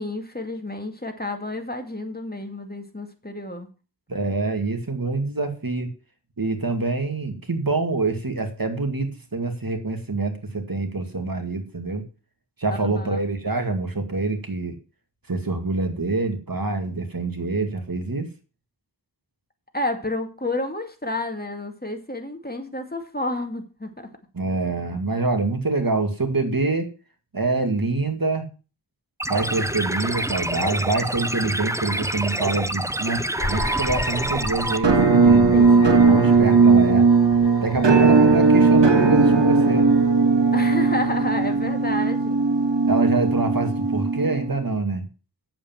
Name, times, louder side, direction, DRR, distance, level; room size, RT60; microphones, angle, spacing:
voice 1, 0.0-3.7 12.7-13.2 19.7-24.2 35.5-36.0 40.5-42.4, left 1 dB, 20° left, 5 dB, 2.4 m, -30 dB
voice 2, 4.1-5.9 6.4-12.0 12.6-14.8 15.3-18.3 24.3-26.9 27.3-28.5 29.3-33.2 33.5-37.0 37.6-39.9 42.8-45.0, right 3 dB, 55° right, 6 dB, 2.3 m, -26 dB
sound 1, 29.2-34.8, right 1 dB, 5° right, 0.6 m, -27 dB
sound 2, 33.4-40.1, equal, 50° left, 3.7 m, -33 dB
Musical instrument, 34.8-44.6, right 4 dB, 80° right, 1.9 m, -17 dB
8.7 x 7.6 x 7.3 m, 0.34 s
wide cardioid pair, 50°, 42 cm